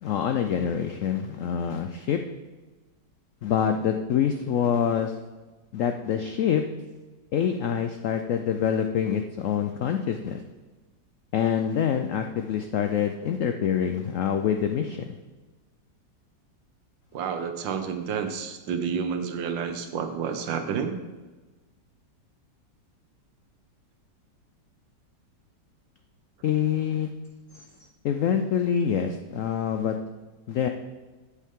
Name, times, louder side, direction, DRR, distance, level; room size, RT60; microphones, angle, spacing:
voice 1, 0.0-2.2 3.4-5.1 5.7-6.6 7.3-10.4 11.3-15.0 26.4-27.1 28.0-29.9 30.5-30.7, left 8 dB, 85° left, 6 dB, 0.7 m, -26 dB
voice 2, 17.1-21.0, right 6 dB, 90° right, 7 dB, 1.6 m, -30 dB
8.3 x 8.2 x 3.7 m, 1.2 s
omnidirectional pair, 2.0 m